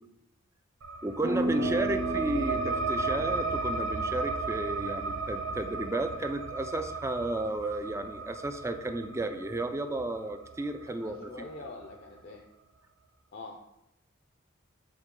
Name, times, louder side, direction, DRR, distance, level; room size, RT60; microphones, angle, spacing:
sound 1, 0.8-11.9, right 4 dB, 85° right, 0.6 m, -35 dB
voice 1, 1.0-11.3, right 2 dB, 15° right, 8 dB, 0.4 m, -33 dB
sound 2, 1.2-6.8, equal, 55° right, 1.9 m, -37 dB
voice 2, 1.5-1.9 10.9-12.4 13.3-13.6, left 3 dB, 50° left, 1 dB, 0.6 m, -44 dB
7.8 x 4.0 x 3.7 m, 0.84 s
head